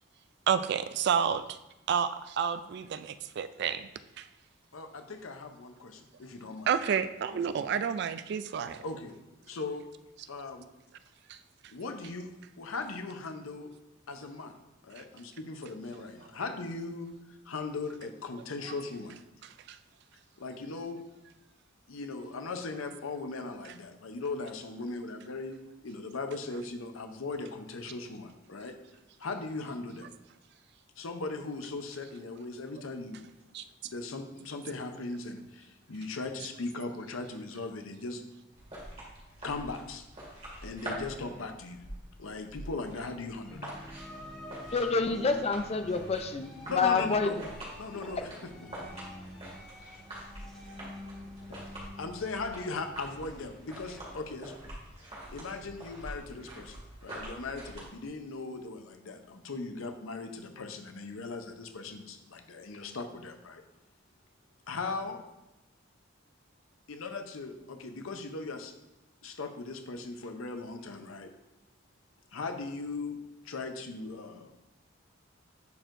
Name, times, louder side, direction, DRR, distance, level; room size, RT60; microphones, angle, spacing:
voice 1, 0.5-1.6 1.9-3.9 4.2-4.3 6.7-8.8 11.3-11.4 19.7-19.8 33.5-33.6, right 7 dB, 55° right, 12 dB, 0.3 m, -30 dB
voice 2, 4.7-6.7 7.3-7.4 8.8-9.1 9.4-9.8 10.3-10.7 11.7-12.3 12.6-13.7 14.1-14.5 14.8-19.1 20.4-21.0 21.9-25.6 25.8-28.8 29.2-30.1 31.0-33.2 33.9-38.2 39.4-40.1 40.6-41.8 42.2-43.7 46.7-47.4 47.8-48.4 51.5-51.6 52.0-54.5 55.3-63.6 64.7-65.2 66.9-68.7 69.2-71.3 72.3-73.2 73.4-74.5, left 3 dB, 85° left, 6 dB, 0.7 m, -38 dB
sound 1, 38.5-57.9, right 1 dB, 30° right, 2.1 m, -46 dB
sound 2, 43.5-54.2, left 1 dB, 5° left, 2.1 m, -47 dB
voice 3, 44.7-47.4, left 4 dB, 30° left, 7 dB, 0.5 m, -28 dB
10.5 x 4.5 x 2.6 m, 1.0 s
head